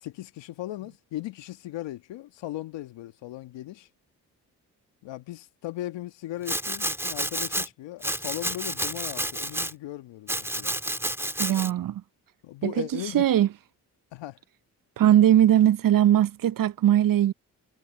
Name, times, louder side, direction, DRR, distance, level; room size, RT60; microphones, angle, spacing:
voice 1, 0.0-3.9 5.0-10.7 12.4-13.3 14.1-14.4, left 15 dB, 80° left, 1.7 m, -37 dB
Domestic sounds home sounds, 6.4-7.7 8.0-9.7 10.3-11.7, right 1 dB, 5° right, 2.4 m, -30 dB
voice 2, 11.4-12.0 12.6-13.5 15.0-17.3, right 11 dB, 50° right, 0.6 m, -20 dB
hypercardioid pair, 40°, 44 cm